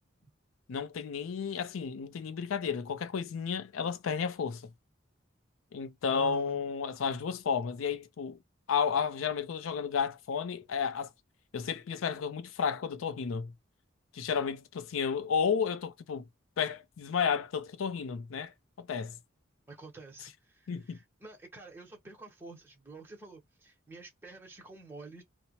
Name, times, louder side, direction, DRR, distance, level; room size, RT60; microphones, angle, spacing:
voice 1, 0.7-4.6 5.7-8.4 8.7-11.1 11.5-13.5 14.1-16.2 16.6-18.5 18.8-19.1 20.7-21.0, left 6 dB, 85° left, 0.4 m, -32 dB
voice 2, 6.1-6.6 19.7-25.2, right 3 dB, 10° right, 0.8 m, -49 dB
2.8 x 2.0 x 2.8 m
head